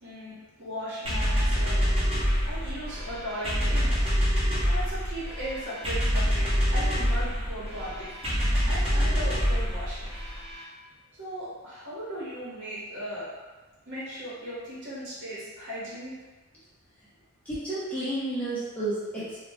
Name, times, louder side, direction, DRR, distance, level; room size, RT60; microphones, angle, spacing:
voice 1, 0.0-1.8 2.4-4.1 4.6-8.1 8.7-10.1 11.2-13.3 13.9-16.2, equal, 55° right, -9 dB, 1.2 m, -37 dB
sound 1, 1.0-10.6, equal, 25° right, 0.8 m, -26 dB
voice 2, 17.5-19.4, right 1 dB, 5° left, -11 dB, 0.7 m, -31 dB
2.4 x 2.1 x 3.5 m, 1.2 s
head